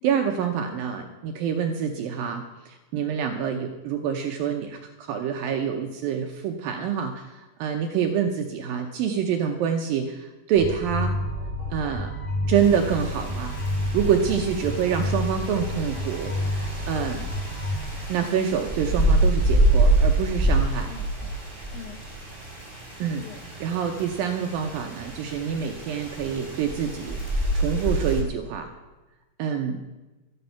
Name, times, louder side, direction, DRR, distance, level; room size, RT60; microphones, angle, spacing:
voice 1, 0.0-11.2 11.7-12.1 12.5-13.6 13.9-17.3 18.1-20.9 23.0-23.2 23.6-27.2 27.5-28.7 29.4-29.8, right 8 dB, 80° right, 4 dB, 2.1 m, -26 dB
sound 1, 10.6-17.8, left 1 dB, 40° left, 4.4 m, -30 dB
sound 2, 12.6-28.2, right 2 dB, 10° left, 2.6 m, -27 dB
voice 2, 20.9-21.3 21.7-22.0 23.2-23.4, left 10 dB, 80° left, 5 dB, 2.0 m, -44 dB
13.0 x 12.0 x 5.7 m, 1.1 s
omnidirectional pair, 5.0 m